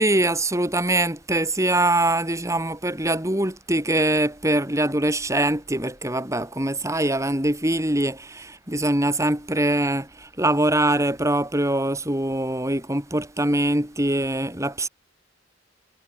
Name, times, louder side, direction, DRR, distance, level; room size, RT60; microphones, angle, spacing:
voice 1, 0.0-14.9, right 1 dB, 15° right, 6.4 m, -23 dB
head